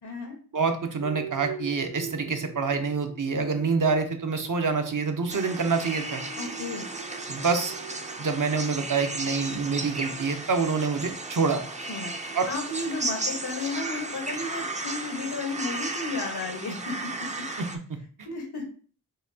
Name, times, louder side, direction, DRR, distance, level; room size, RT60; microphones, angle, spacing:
voice 1, 0.0-0.4 6.4-6.8 11.9-17.3 18.2-18.7, left 3 dB, 80° left, 3 dB, 1.3 m, -33 dB
voice 2, 0.5-6.2 7.3-7.7 8.2-11.6 12.3-12.5 17.6-18.0, right 4 dB, 55° right, 6 dB, 0.7 m, -26 dB
sound 1, 1.0-15.2, right 6 dB, 90° right, 0.7 m, -44 dB
sound 2, 5.3-17.8, right 2 dB, 20° right, 0.5 m, -35 dB
5.5 x 2.8 x 2.7 m, 0.42 s
wide cardioid pair, 75°, 38 cm